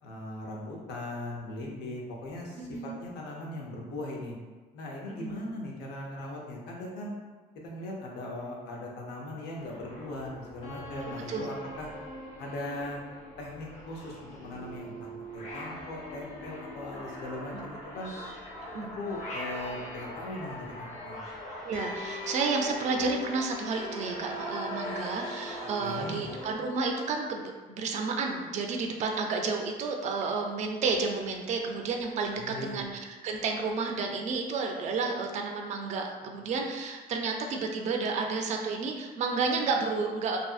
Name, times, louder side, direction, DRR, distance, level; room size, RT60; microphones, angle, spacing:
voice 1, 0.0-4.3 4.7-7.1 7.6-11.9 12.4-13.0 13.4-18.1 19.0-21.2 25.8-26.3 32.3-32.8, left 1 dB, 80° left, -2 dB, 0.7 m, -39 dB
voice 2, 2.6-3.0 5.1-5.5 11.0-11.5 17.5-17.6 18.7-18.9 21.6-40.4, right 4 dB, 45° right, 2 dB, 0.4 m, -31 dB
sound 1, 9.5-26.5, left 1 dB, 45° left, 0.7 m, -41 dB
2.6 x 2.5 x 2.3 m, 1.3 s
cardioid pair, 110°, 17 cm